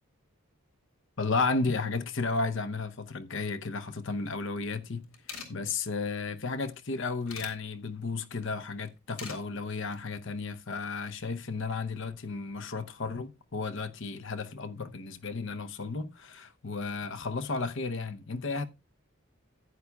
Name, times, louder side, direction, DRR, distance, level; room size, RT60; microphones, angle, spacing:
voice 1, 1.2-5.1 5.5-18.6, left 4 dB, 60° left, 0.8 m, -33 dB
sound 1, 4.8-4.9 5.0-5.5 6.7-7.5 8.9-9.4 9.8-10.0, left 5 dB, 80° left, 2.3 m, -42 dB
14.5 x 9.6 x 2.3 m
head